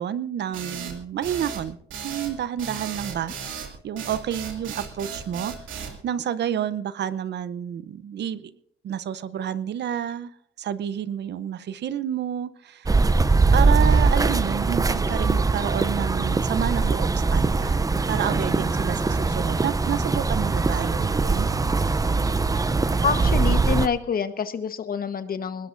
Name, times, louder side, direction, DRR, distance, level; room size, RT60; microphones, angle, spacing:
voice 1, 0.0-1.8 2.0-5.5 6.0-8.5 8.8-10.3 10.6-12.9 13.5-17.8 18.1-21.5, right 9 dB, 60° right, 15 dB, 0.7 m, -29 dB
sound 1, 0.5-6.0, right 7 dB, 80° right, 2.6 m, -35 dB
sound 2, 12.9-23.9, right 3 dB, 15° right, 0.6 m, -22 dB
sound 3, 14.0-23.3, left 1 dB, 5° left, 2.5 m, -39 dB
voice 2, 23.0-25.7, left 6 dB, 50° left, 11 dB, 1.2 m, -27 dB
21.5 x 19.5 x 2.6 m, 0.67 s
cardioid pair, 90°, 20 cm